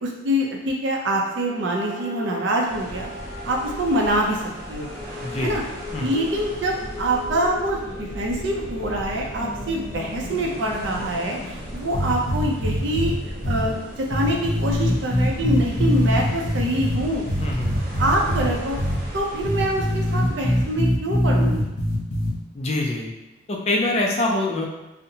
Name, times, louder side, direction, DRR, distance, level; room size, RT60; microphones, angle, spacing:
voice 1, 0.0-3.1 3.4-4.9 5.4-5.6 6.0-13.1 13.4-17.2 18.0-18.8 19.1-21.7, right 1 dB, 65° right, 0 dB, 0.5 m, -25 dB
sound 1, 1.5-12.2, left 1 dB, 15° right, 0.9 m, -38 dB
sound 2, 2.7-20.9, equal, 45° right, 0.9 m, -36 dB
voice 2, 5.2-5.5 5.9-6.1 17.4-17.8 22.5-23.1 23.5-24.7, left 2 dB, 30° left, -1 dB, 0.4 m, -24 dB
sound 3, 11.9-13.1 13.4-13.6 14.1-17.0 17.3-18.5 18.8-18.9 19.4-22.3, equal, 80° left, 0.6 m, -22 dB
2.6 x 2.0 x 2.7 m, 1.0 s
head